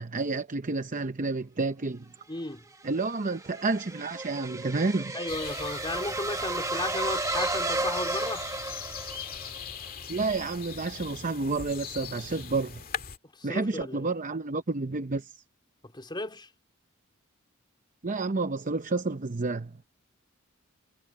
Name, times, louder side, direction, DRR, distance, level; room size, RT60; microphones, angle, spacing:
voice 1, 0.0-2.1 2.8-5.1 10.1-12.8 13.4-15.3 18.0-19.8, right 3 dB, 40° right, 0.8 m, -30 dB
voice 2, 2.3-2.6 5.1-8.4 13.4-14.1 15.9-16.5, left 2 dB, 20° left, 3.9 m, -34 dB
sound 1, 2.5-9.6, right 2 dB, 15° right, 1.2 m, -33 dB
sound 2, 5.3-13.2, left 6 dB, 45° left, 2.0 m, -41 dB
head